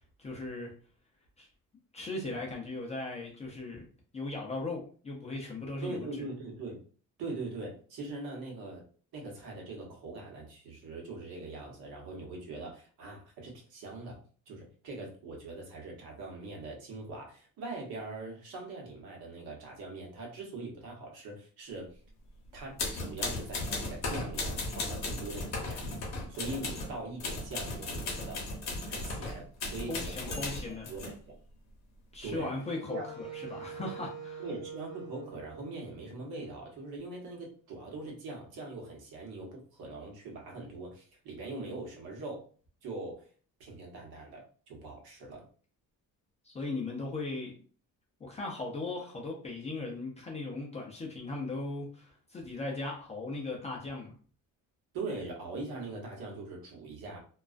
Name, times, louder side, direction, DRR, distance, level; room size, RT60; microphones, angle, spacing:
voice 1, 0.2-0.7 1.4-1.5 1.9-3.9 4.1-6.1 29.9-30.9 32.1-34.4 46.4-47.6 48.2-54.1, left 2 dB, 20° left, -2 dB, 0.4 m, -38 dB
voice 2, 5.8-6.8 7.2-8.8 9.1-14.2 14.5-22.0 22.5-28.4 28.9-30.6 30.9-31.4 32.2-32.5 32.9-33.3 34.4-42.4 42.8-43.3 43.6-45.4 54.9-57.2, right 2 dB, 75° right, 0 dB, 1.0 m, -42 dB
sound 1, 22.8-26.9 27.2-31.1, left 2 dB, 50° left, 0.7 m, -36 dB
Wind instrument woodwind instrument, 32.3-36.6, right 4 dB, 30° right, 1.0 m, -45 dB
2.3 x 2.2 x 2.4 m, 0.42 s
cardioid pair, 170°, 36 cm